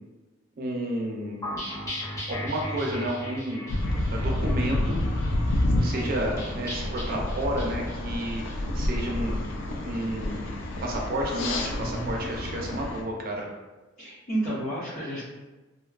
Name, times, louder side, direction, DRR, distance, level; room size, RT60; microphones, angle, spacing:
voice 1, 0.6-1.5 2.2-3.7 4.1-5.0 5.8-8.4 8.7-9.4 9.8-10.5 10.8-13.5, right 1 dB, 45° right, -1 dB, 0.4 m, -31 dB
sound 1, 1.4-10.9, equal, 15° left, 0.7 m, -37 dB
sound 2, 3.7-13.0, left 1 dB, 70° left, 0.4 m, -29 dB
voice 2, 4.3-4.6 11.8-12.1 14.0-15.2, right 1 dB, 90° left, -13 dB, 1.0 m, -32 dB
2.6 x 2.2 x 2.3 m, 1.2 s
head